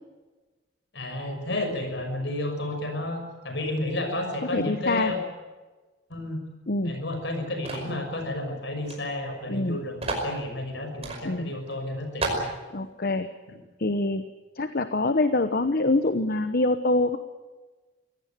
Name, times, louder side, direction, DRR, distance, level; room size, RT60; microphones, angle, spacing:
voice 1, 0.9-5.2 6.1-6.4 6.8-12.5, left 1 dB, 70° left, 5 dB, 6.0 m, -31 dB
voice 2, 4.5-5.1 6.7-6.9 9.5-9.8 11.2-11.5 12.7-13.3 13.8-14.2 14.6-17.2, left 2 dB, 55° left, 9 dB, 1.0 m, -25 dB
sound 1, 7.7-8.0 8.9-9.0 9.2-9.3 10.0-10.3 11.0-11.2 11.7-11.8 12.2-12.5, right 2 dB, 35° right, 5.4 m, -30 dB
25.0 x 17.0 x 9.2 m, 1.3 s
head